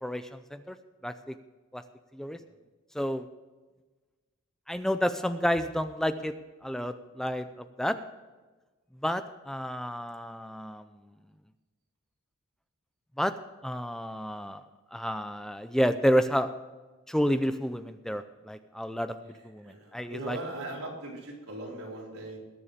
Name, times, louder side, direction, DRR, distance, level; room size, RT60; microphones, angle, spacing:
voice 1, 0.0-0.8 1.0-1.4 1.7-1.8 2.1-2.4 2.9-3.3 4.7-6.3 6.6-8.0 9.0-10.9 13.2-13.3 13.6-14.6 14.9-16.5 17.1-20.4, equal, ahead, 10 dB, 0.5 m, -30 dB
voice 2, 19.2-22.4, right 2 dB, 85° right, -2 dB, 3.9 m, -40 dB
20.5 x 7.0 x 5.1 m, 1.2 s
head